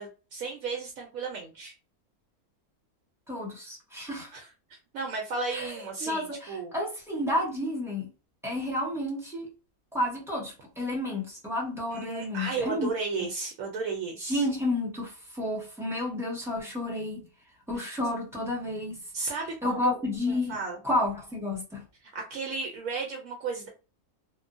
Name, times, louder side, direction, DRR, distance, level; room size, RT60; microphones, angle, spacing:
voice 1, 0.0-1.7 4.3-6.7 11.9-14.5 17.7-17.9 19.1-20.0 20.3-20.8 22.1-23.7, right 4 dB, 75° right, 1.0 m, -34 dB
voice 2, 3.3-4.3 5.5-8.1 8.4-9.5 9.9-12.9 14.2-17.2 17.7-19.4 19.6-20.6 20.8-21.8, left 1 dB, ahead, 1.0 m, -31 dB
2.9 x 2.1 x 2.5 m
omnidirectional pair, 1.5 m